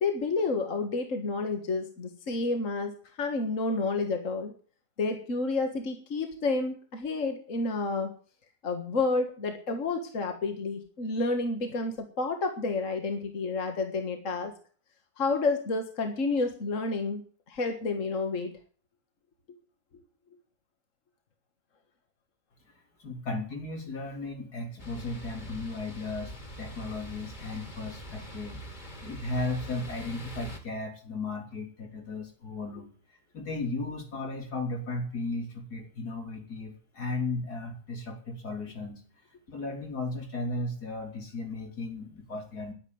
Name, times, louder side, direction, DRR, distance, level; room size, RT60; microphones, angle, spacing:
voice 1, 0.0-4.5 5.0-8.1 8.6-14.5 15.2-17.2 17.5-18.5, left 3 dB, 55° left, 5 dB, 2.1 m, -30 dB
voice 2, 23.0-32.9 33.3-39.0 39.5-42.7, left 2 dB, 80° left, 2 dB, 3.9 m, -35 dB
sound 1, 24.8-30.6, equal, 30° left, 2.5 m, -43 dB
10.5 x 10.0 x 9.4 m, 0.43 s
omnidirectional pair, 1.6 m